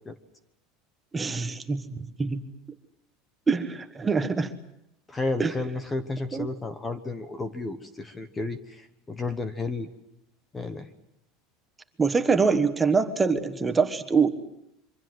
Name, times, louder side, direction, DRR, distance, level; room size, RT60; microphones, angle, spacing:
voice 1, 1.1-2.4 3.5-4.5 5.4-5.5 6.3-6.5 12.0-14.3, right 5 dB, 10° right, 8 dB, 1.3 m, -24 dB
voice 2, 5.1-9.9 10.5-10.9, left 3 dB, 10° left, 11 dB, 1.1 m, -32 dB
26.5 x 24.5 x 7.8 m, 0.80 s
cardioid pair, 170°, 0 cm